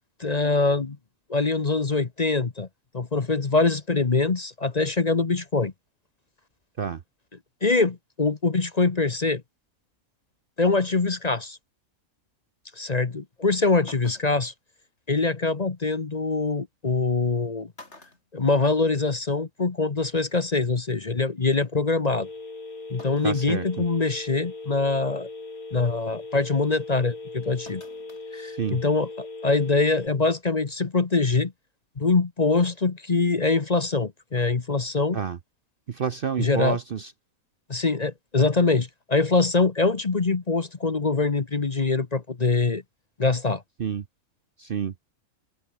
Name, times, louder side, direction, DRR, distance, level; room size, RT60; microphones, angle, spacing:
voice 1, 0.2-1.0 1.3-2.7 2.9-5.7 7.6-9.4 10.6-11.6 12.8-14.5 15.1-17.7 18.3-22.3 22.9-25.3 25.7-27.8 28.3-31.5 32.0-35.2 36.4-36.8 37.7-42.8 43.2-43.6, left 3 dB, 30° left, 1.1 m, -24 dB
sound 1, 13.3-13.4 13.9-14.5 16.1-16.2 17.2-17.4 17.7-19.1 19.5-19.6 20.8-20.9 23.0-23.5 24.0-24.1 24.7-25.0 27.7-28.3 28.6-28.7, left 2 dB, 50° left, 4.5 m, -49 dB
Telephone, 22.1-30.1, left 3 dB, 85° left, 4.6 m, -39 dB
voice 2, 23.2-23.8 28.3-28.8 35.1-35.4 35.9-37.1 43.8-44.0 44.6-44.9, right 7 dB, 50° right, 0.8 m, -29 dB
omnidirectional pair, 1.5 m